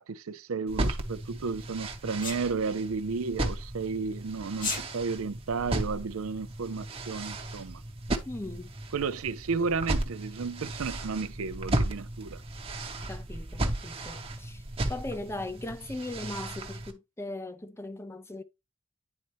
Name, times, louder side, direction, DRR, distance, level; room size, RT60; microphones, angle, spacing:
voice 1, 0.0-7.8 8.9-12.4, right 4 dB, 70° right, 0.5 m, -33 dB
sound 1, 0.7-16.9, right 1 dB, 25° right, 0.9 m, -35 dB
Sneeze, 2.2-2.4 4.5-4.8, left 4 dB, 40° left, 1.5 m, -32 dB
voice 2, 8.3-8.7 13.1-14.6 14.9-18.4, left 2 dB, 10° left, 0.5 m, -38 dB
9.6 x 4.2 x 3.0 m
head